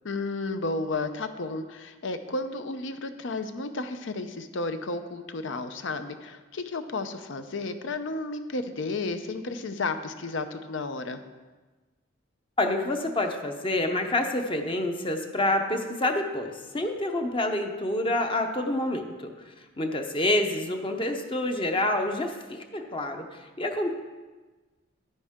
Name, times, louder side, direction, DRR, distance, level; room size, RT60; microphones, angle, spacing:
voice 1, 0.0-11.2, left 3 dB, 65° left, 9 dB, 0.7 m, -32 dB
voice 2, 12.6-19.3 19.8-23.2 23.6-23.9, left 1 dB, 25° left, 4 dB, 0.8 m, -27 dB
10.0 x 9.7 x 3.7 m, 1.3 s
head